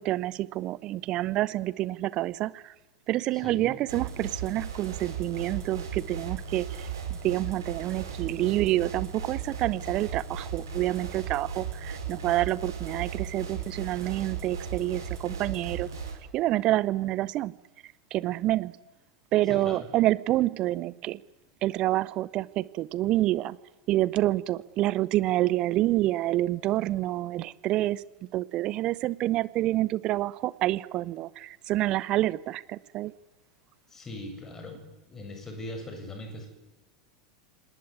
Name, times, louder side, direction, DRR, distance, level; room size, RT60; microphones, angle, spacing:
voice 1, 0.0-2.7 3.1-15.9 16.3-17.5 18.1-18.8 19.3-21.2 21.6-23.6 23.9-28.0 28.3-33.1, right 15 dB, 40° right, 20 dB, 0.9 m, -28 dB
voice 2, 3.3-3.7 19.5-19.9 33.9-34.8 35.1-36.5, left 1 dB, 20° left, 5 dB, 6.9 m, -40 dB
sound 1, 3.9-16.1, right 6 dB, 65° right, 6.8 m, -36 dB
29.5 x 19.0 x 9.8 m, 1.0 s
figure-of-eight pair, 85°, 2 cm